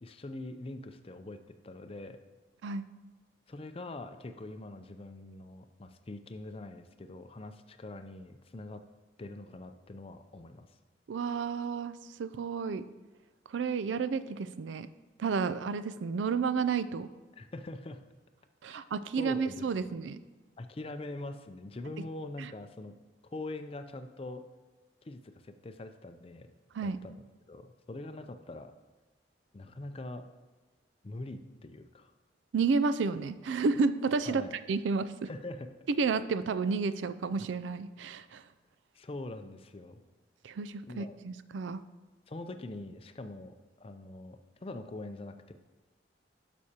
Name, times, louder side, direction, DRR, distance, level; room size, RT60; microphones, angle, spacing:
voice 1, 0.0-2.2 3.5-8.8 9.2-10.7 17.4-18.0 18.7-18.8 19.2-19.9 20.6-23.0 23.2-24.4 25.0-26.5 26.8-28.7 29.5-30.2 31.0-32.1 34.2-34.5 35.3-35.7 38.9-40.0 40.9-41.2 42.3-45.5, left 2 dB, 30° left, 8 dB, 0.4 m, -43 dB
voice 2, 11.1-12.8 13.5-14.9 15.2-17.1 18.6-20.2 22.4-22.5 26.7-27.0 32.5-35.3 35.9-38.4 40.4-41.8, right 4 dB, 85° right, 14 dB, 0.4 m, -31 dB
11.0 x 6.2 x 2.8 m, 1.3 s
head